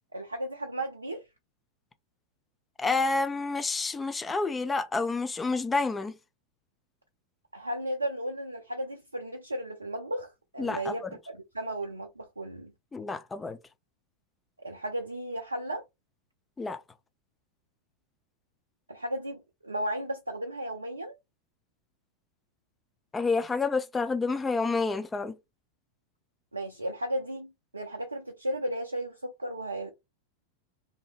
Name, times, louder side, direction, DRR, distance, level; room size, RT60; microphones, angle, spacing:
voice 1, 0.1-1.2 7.5-12.7 14.6-15.8 18.9-21.2 26.5-29.9, right 1 dB, 80° right, 0.4 m, -35 dB
voice 2, 2.8-6.1 10.6-10.9 12.9-13.6 16.6-16.8 23.1-25.3, left 3 dB, 15° left, 0.3 m, -29 dB
2.6 x 2.6 x 2.3 m
figure-of-eight pair, 90°, 0 cm